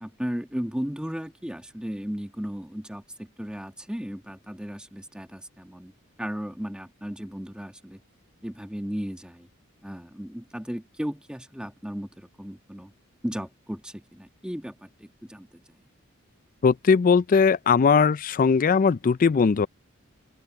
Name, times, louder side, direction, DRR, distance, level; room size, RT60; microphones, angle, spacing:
voice 1, 0.0-5.9 6.2-8.0 8.4-9.5 9.8-12.9 13.2-15.6, equal, 5° right, 1.5 m, -35 dB
voice 2, 16.6-19.7, left 5 dB, 40° left, 0.4 m, -19 dB
open air
head